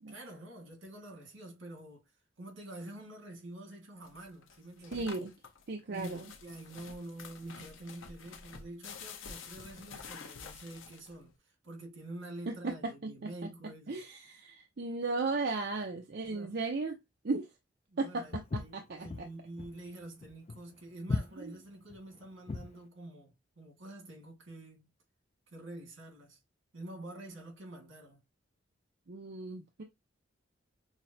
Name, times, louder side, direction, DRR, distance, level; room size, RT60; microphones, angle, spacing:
voice 1, 0.1-2.1 2.4-5.1 5.9-14.0 16.2-16.6 17.9-24.9 25.5-26.4 26.7-28.2, right 1 dB, 80° right, 1.8 m, -47 dB
sound 1, 4.0-11.3, left 5 dB, 85° left, 0.8 m, -49 dB
voice 2, 4.9-5.3 5.7-6.3 12.5-13.3 13.9-17.0 17.2-17.5 18.0-19.3 21.4-21.5 29.1-29.8, right 3 dB, 55° right, 0.6 m, -36 dB
Walk footsteps, 18.3-22.8, left 3 dB, 35° left, 0.4 m, -37 dB
6.0 x 2.1 x 2.7 m
head